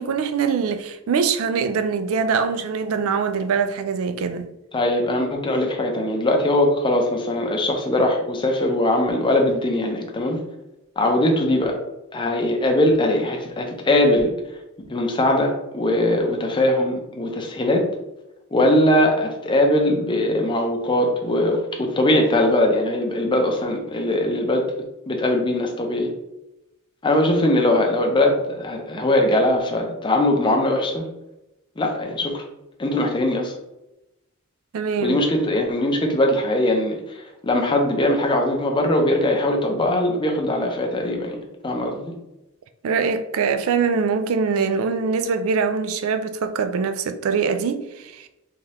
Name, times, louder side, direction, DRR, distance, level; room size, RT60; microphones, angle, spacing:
voice 1, 0.0-4.5 34.7-35.2 42.8-48.3, right 5 dB, 65° right, 0.4 m, -23 dB
voice 2, 4.7-10.4 11.0-11.8 12.1-14.3 14.9-17.8 18.5-24.7 25.1-26.1 27.0-31.1 31.8-32.4 32.8-33.5 35.0-41.4 41.6-42.1, left 1 dB, 20° left, 0.5 m, -21 dB
3.6 x 2.8 x 3.2 m
head